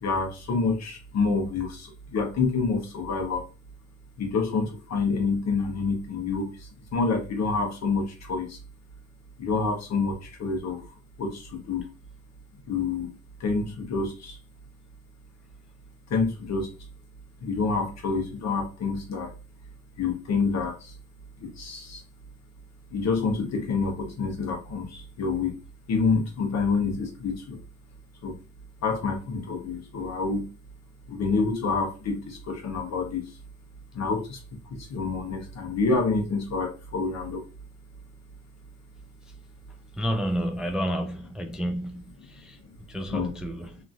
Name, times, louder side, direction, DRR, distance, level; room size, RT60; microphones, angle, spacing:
voice 1, 0.0-3.5 4.2-8.6 9.4-10.9 11.2-11.9 12.7-13.1 13.4-14.4 16.1-16.7 17.4-19.3 20.0-20.9 21.4-22.0 22.9-25.5 25.9-27.6 28.2-28.4 28.8-30.5 31.1-33.3 33.9-37.4 41.5-41.6 42.6-42.7 43.1-43.3, left 4 dB, 60° left, 0.9 m, -28 dB
voice 2, 40.0-42.6 42.9-43.8, equal, 5° right, 0.3 m, -30 dB
2.9 x 2.5 x 2.5 m
cardioid pair, 90°, 30 cm